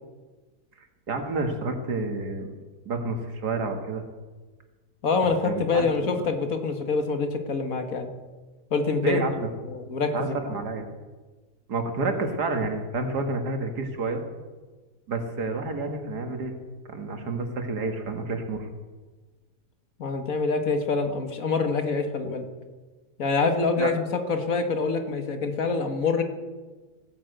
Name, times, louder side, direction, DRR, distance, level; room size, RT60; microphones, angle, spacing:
voice 1, 0.8-2.5 2.9-4.0 5.4-5.9 6.2-6.3 9.0-9.5 10.1-10.9 11.7-14.2 15.1-16.5 16.9-18.7 23.8-23.9, right 3 dB, 85° right, 5 dB, 2.3 m, -29 dB
voice 2, 5.0-8.1 8.7-9.2 9.7-10.5 20.0-22.5 23.2-26.2, left 4 dB, 60° left, 6 dB, 1.9 m, -26 dB
16.0 x 10.0 x 7.9 m, 1.3 s
omnidirectional pair, 1.7 m